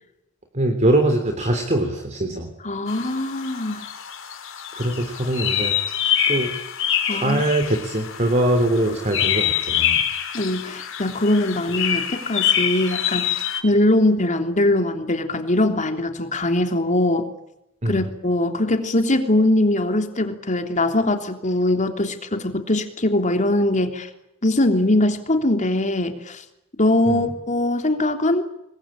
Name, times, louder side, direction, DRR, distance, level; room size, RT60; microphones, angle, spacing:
voice 1, 0.5-2.5 4.7-5.8 6.3-6.5 7.1-10.0 17.8-18.0 27.1-27.3, right 1 dB, 35° right, 6 dB, 3.4 m, -22 dB
voice 2, 2.6-3.9 7.1-7.4 10.3-13.3 13.6-17.3 17.9-24.1 24.4-26.4 26.8-28.4, left 1 dB, 35° left, 6 dB, 3.3 m, -21 dB
sound 1, 2.9-13.6, left 9 dB, 65° left, 4.6 m, -25 dB
28.0 x 22.0 x 8.9 m, 0.86 s
head